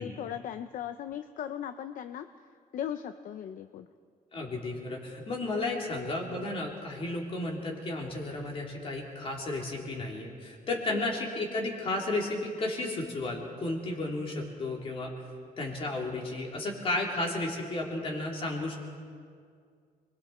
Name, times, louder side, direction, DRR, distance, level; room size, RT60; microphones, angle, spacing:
voice 1, 0.0-2.3 2.7-3.9 10.9-11.1, left 9 dB, 60° left, 9 dB, 0.6 m, -38 dB
voice 2, 4.3-15.1 15.6-18.8, left 2 dB, 40° left, -1 dB, 3.5 m, -33 dB
30.0 x 22.0 x 4.3 m, 2.1 s
cardioid pair, 175°, 15 cm